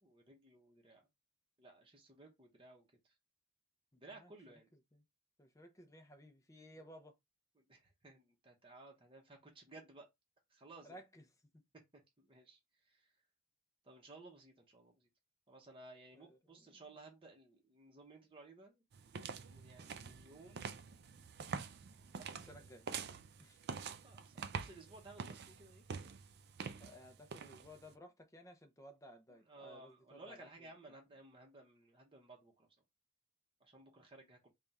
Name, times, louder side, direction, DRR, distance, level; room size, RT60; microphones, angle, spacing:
voice 1, 0.0-1.0 1.6-3.1 4.0-4.7 7.6-10.1 10.5-11.0 11.7-12.6 12.9-13.1 13.8-15.1 15.5-18.8 19.3-20.7 22.1-22.5 24.0-25.9 29.3-32.7 33.6-34.5, right 2 dB, 25° right, 0.8 m, -58 dB
voice 2, 3.9-4.3 4.9-5.0 5.4-7.2 10.8-11.2 16.1-16.9 22.3-22.9 23.4-23.6 26.8-30.7, equal, 15° left, 0.6 m, -58 dB
sound 1, 18.9-27.9, right 6 dB, 50° right, 0.4 m, -46 dB
3.4 x 2.4 x 4.0 m
head